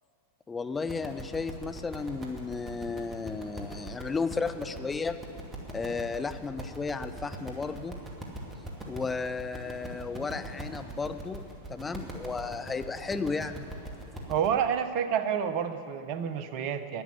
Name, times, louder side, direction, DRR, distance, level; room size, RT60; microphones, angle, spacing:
voice 1, 0.5-5.2 5.7-8.0 8.9-13.7, left 4 dB, 15° left, 10 dB, 0.5 m, -34 dB
sound 1, 0.7-14.5, right 1 dB, 20° right, 2.3 m, -42 dB
voice 2, 14.3-17.0, right 8 dB, 45° right, 11 dB, 0.8 m, -29 dB
11.5 x 10.5 x 8.2 m, 2.5 s
figure-of-eight pair, 90°, 0 cm